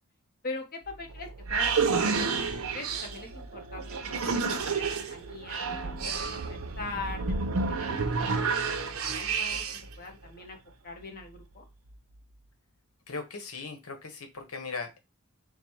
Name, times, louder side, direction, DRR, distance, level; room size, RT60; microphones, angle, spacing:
voice 1, 0.4-2.4 2.7-10.6 10.8-11.6, left 3 dB, 45° left, 4 dB, 0.9 m, -42 dB
sound 1, 0.9-9.9, right 5 dB, 70° right, 0.6 m, -30 dB
voice 2, 13.1-15.0, left 4 dB, 85° left, 5 dB, 1.0 m, -38 dB
3.9 x 2.1 x 4.4 m, 0.24 s
head